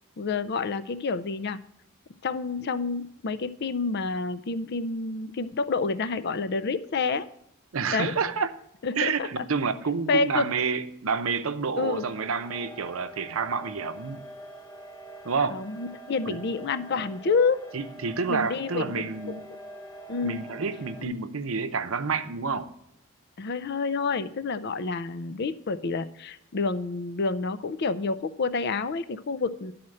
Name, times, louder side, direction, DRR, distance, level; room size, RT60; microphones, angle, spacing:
voice 1, 0.2-1.6 2.2-7.3 7.9-8.1 8.8-9.5 10.1-10.5 11.8-12.1 15.5-17.6 18.3-19.3 20.1-20.4 21.0-21.2 23.4-29.7, left 4 dB, 50° left, 14 dB, 0.4 m, -28 dB
voice 2, 7.7-8.5 9.0-14.2 15.2-15.6 16.3-16.4 17.7-19.4 20.2-22.7, right 5 dB, 75° right, 10 dB, 0.7 m, -29 dB
sound 1, 11.8-21.0, right 1 dB, 20° left, 0.8 m, -45 dB
11.0 x 4.3 x 7.6 m, 0.73 s
head